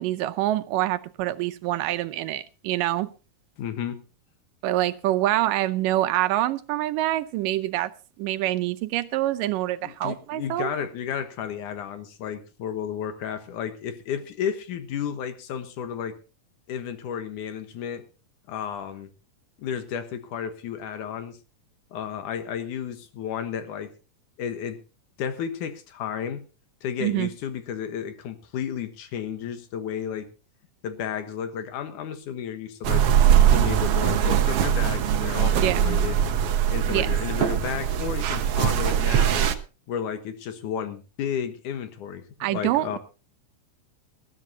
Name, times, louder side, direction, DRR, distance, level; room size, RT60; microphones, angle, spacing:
voice 1, 0.0-3.1 4.6-7.9 8.2-10.7 27.0-27.3 35.6-35.8 36.9-37.1 42.4-43.0, right 15 dB, 90° right, 2.4 m, -26 dB
voice 2, 3.6-4.0 9.8-16.1 16.7-18.0 18.5-19.1 19.6-21.4 21.9-23.9 24.4-24.8 25.2-26.4 26.8-30.3 30.8-33.1 33.4-36.2 36.7-39.4 39.9-43.0, left 8 dB, 75° left, 2.7 m, -32 dB
sound 1, 32.8-39.6, right 9 dB, 65° right, 1.6 m, -21 dB
20.0 x 13.5 x 2.8 m
omnidirectional pair, 3.7 m